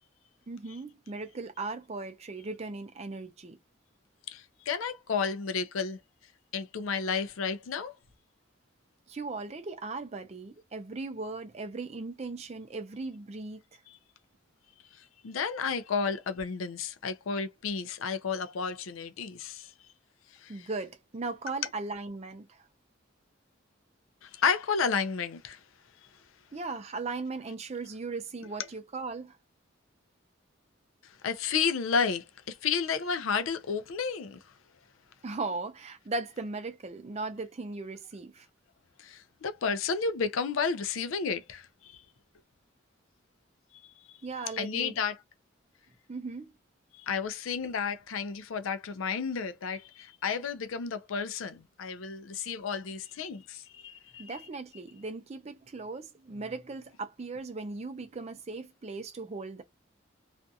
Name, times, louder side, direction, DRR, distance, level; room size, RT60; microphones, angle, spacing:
voice 1, 0.5-3.6 9.1-13.8 20.5-22.6 26.5-29.4 35.2-38.5 44.2-44.9 46.1-46.5 54.2-59.6, right 3 dB, 35° right, 0.4 m, -38 dB
voice 2, 4.3-6.0 6.5-7.9 15.2-19.7 20.4-20.7 24.2-25.6 31.2-34.4 39.0-41.9 44.5-45.2 47.1-54.3, left 5 dB, 90° left, 0.5 m, -32 dB
2.5 x 2.3 x 2.6 m
head